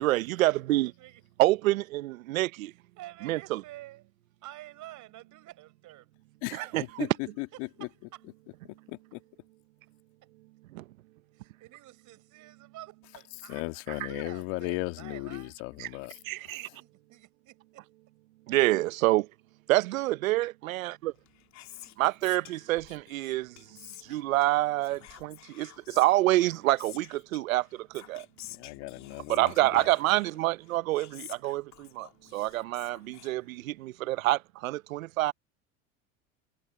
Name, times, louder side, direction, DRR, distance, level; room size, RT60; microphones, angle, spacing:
voice 1, 0.0-0.9 1.4-2.7 3.2-3.6 6.5-7.1 10.7-10.8 15.8-15.9 16.3-16.7 18.5-19.3 19.7-21.1 22.0-28.3 29.3-35.3, right 17 dB, 80° right, 1.1 m, -27 dB
voice 2, 3.0-4.0 4.4-6.1 11.3-13.6 13.9-15.5 16.3-17.8, right 16 dB, 45° right, 5.8 m, -49 dB
voice 3, 6.4-7.9 8.9-9.2 13.4-16.2 28.5-29.9, left 26 dB, 60° left, 1.9 m, -36 dB
Whispering, 21.1-33.9, left 13 dB, 40° left, 2.9 m, -51 dB
hypercardioid pair, 100°, 40 cm